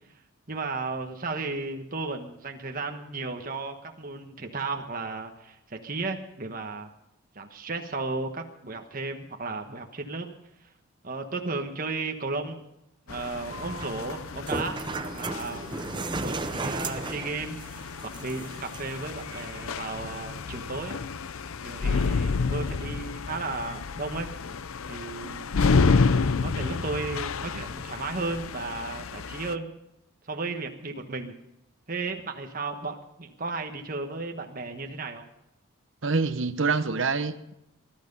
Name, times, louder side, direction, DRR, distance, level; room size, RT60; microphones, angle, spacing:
voice 1, 0.5-6.9 7.3-10.3 11.0-12.6 13.1-14.8 15.1-15.7 16.1-21.0 21.6-24.3 24.9-25.5 26.4-29.7 30.3-31.3 31.9-35.3, right 3 dB, 40° right, 1.3 m, -34 dB
sound 1, 13.1-29.5, left 4 dB, 75° left, 0.6 m, -30 dB
sound 2, 13.5-19.5, right 2 dB, 20° right, 0.7 m, -35 dB
voice 2, 36.0-37.5, right 4 dB, 60° right, 0.9 m, -26 dB
19.5 x 12.0 x 5.4 m
head